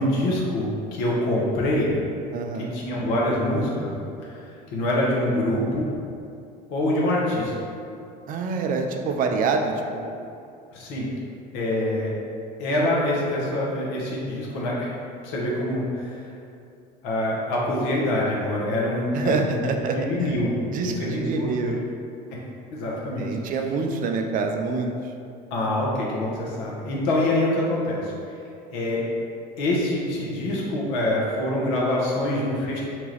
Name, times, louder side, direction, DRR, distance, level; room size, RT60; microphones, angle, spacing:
voice 1, 0.0-1.9 2.6-3.9 4.2-5.9 6.7-7.5 10.7-11.1 11.5-12.1 12.6-14.9 15.2-16.2 17.0-20.5 20.8-21.8 22.7-23.3 25.5-28.1 28.7-29.0 29.6-32.8, left 1 dB, 65° left, -4 dB, 0.8 m, -25 dB
voice 2, 2.3-2.7 8.3-10.2 19.1-20.4 20.7-21.8 23.2-24.9, right 4 dB, 40° right, 4 dB, 0.4 m, -26 dB
2.9 x 2.3 x 3.2 m, 2.5 s
hypercardioid pair, 75°, 21 cm